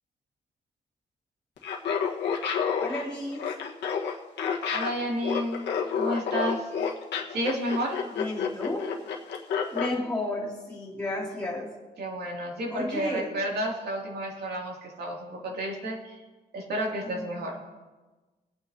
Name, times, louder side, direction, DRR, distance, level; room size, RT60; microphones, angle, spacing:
Laughter, 1.6-9.9, left 6 dB, 90° left, 1.5 m, -29 dB
voice 1, 2.8-3.5 8.1-8.9 9.7-11.7 12.7-13.3 17.0-17.4, left 1 dB, 5° left, -7 dB, 2.8 m, -33 dB
voice 2, 4.7-5.7 6.0-6.7 7.3-8.0 12.0-16.2 16.5-17.6, right 1 dB, 65° right, -1 dB, 2.7 m, -31 dB
23.0 x 8.8 x 2.8 m, 1.2 s
wide cardioid pair, 170°, 18 cm